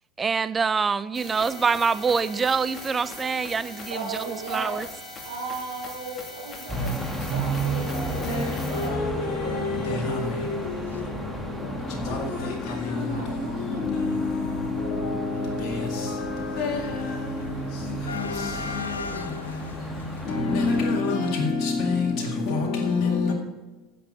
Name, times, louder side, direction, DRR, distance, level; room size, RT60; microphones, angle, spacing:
voice 1, 0.2-4.9, right 5 dB, 25° right, 0.5 m, -25 dB
sound 1, 1.1-8.9, left 2 dB, 25° left, 2.7 m, -40 dB
voice 2, 3.9-4.8 5.2-9.0 12.9-15.0 22.9-23.3, right 4 dB, 80° right, 4.0 m, -37 dB
sound 2, 5.4-5.6 6.1-6.2 6.4-6.5 7.3-7.4 7.8-8.0 8.3-8.4 8.8-11.0 11.3-12.0 12.3-21.4, left 4 dB, 85° left, 0.6 m, -41 dB
sound 3, 6.7-20.8, right 2 dB, ahead, 1.8 m, -33 dB
voice 3, 7.7-23.3, left 4 dB, 45° left, 2.0 m, -28 dB
15.5 x 6.9 x 4.0 m
figure-of-eight pair, 75°, 0 cm